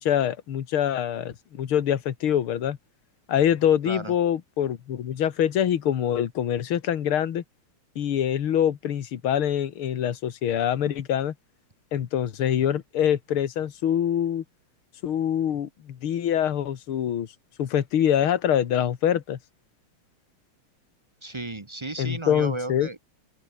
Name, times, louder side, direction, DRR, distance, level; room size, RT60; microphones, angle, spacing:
voice 1, 0.0-2.8 3.3-7.4 8.0-11.3 11.9-14.4 15.0-17.3 17.6-19.4 22.0-22.9, left 10 dB, 80° left, 2.3 m, -25 dB
voice 2, 21.2-23.1, right 2 dB, 25° right, 0.6 m, -34 dB
open air
omnidirectional pair, 2.3 m